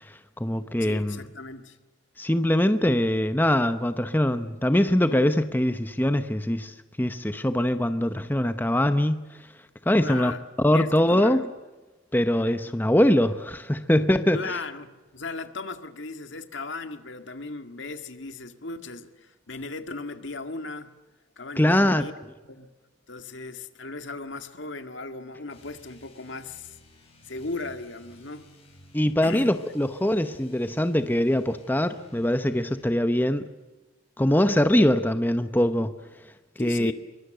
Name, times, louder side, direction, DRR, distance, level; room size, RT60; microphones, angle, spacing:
voice 1, 0.0-1.2 2.2-9.3 9.9-10.3 10.6-11.5 12.1-14.6 21.6-22.0 28.9-33.5 34.2-35.9 36.6-36.9, left 1 dB, 10° left, 0.8 m, -23 dB
voice 2, 0.8-1.8 10.0-10.4 10.7-11.4 14.3-20.9 21.4-22.1 22.4-22.7 23.1-26.8 27.2-28.5 29.2-29.5 36.6-36.9, left 3 dB, 70° left, 2.0 m, -37 dB
sound 1, 25.5-33.0, left 1 dB, 30° left, 6.7 m, -54 dB
26.0 x 23.5 x 7.8 m
head